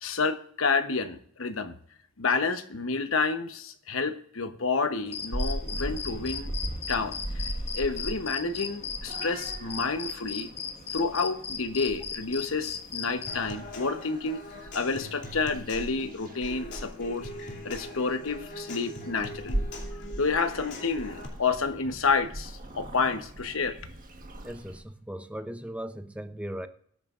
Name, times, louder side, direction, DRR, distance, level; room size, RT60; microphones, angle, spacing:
voice 1, 0.0-1.8 2.2-6.5 6.9-7.2 7.7-10.5 10.9-14.4 14.7-17.3 17.6-19.6 20.2-23.8, left 4 dB, 75° left, 1.0 m, -29 dB
sound 1, 5.1-13.4, left 6 dB, 30° left, 1.1 m, -38 dB
Purr / Meow, 5.3-24.8, right 1 dB, 40° right, 1.4 m, -39 dB
Human voice / Acoustic guitar / Percussion, 13.3-21.3, left 1 dB, 60° left, 3.0 m, -42 dB
voice 2, 24.4-26.7, right 1 dB, 5° right, 0.7 m, -38 dB
21.5 x 9.2 x 2.5 m
head